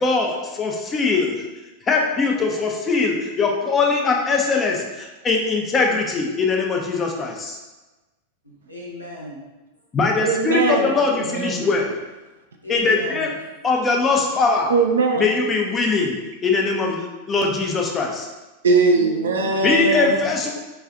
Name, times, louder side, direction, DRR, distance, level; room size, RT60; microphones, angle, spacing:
voice 1, 0.0-1.4 1.9-7.6 9.9-11.9 12.7-13.3 13.6-14.7 15.2-18.3 19.6-20.5, left 4 dB, 20° left, 1 dB, 0.5 m, -21 dB
voice 2, 8.4-9.5 12.6-13.4 19.3-20.3, equal, 90° left, -4 dB, 0.9 m, -36 dB
voice 3, 10.2-11.6 14.7-15.3 18.6-20.5, right 3 dB, 65° right, 2 dB, 0.4 m, -21 dB
4.8 x 2.3 x 2.5 m, 1.1 s
figure-of-eight pair, 90°, 0 cm